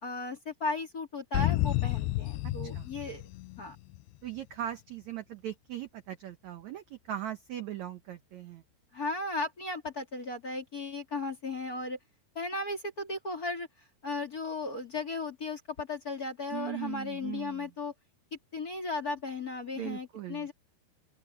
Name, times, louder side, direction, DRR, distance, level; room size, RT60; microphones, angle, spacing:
voice 1, 0.0-3.2 3.6-3.8 8.9-12.0 12.3-13.7 14.0-17.9 18.3-20.5, left 3 dB, 25° left, 2.6 m, -36 dB
sound 1, 1.3-4.1, left 17 dB, 80° left, 2.4 m, -30 dB
voice 2, 4.2-8.6 16.5-17.7 19.8-20.5, right 12 dB, 75° right, 1.7 m, -39 dB
open air
omnidirectional pair, 4.8 m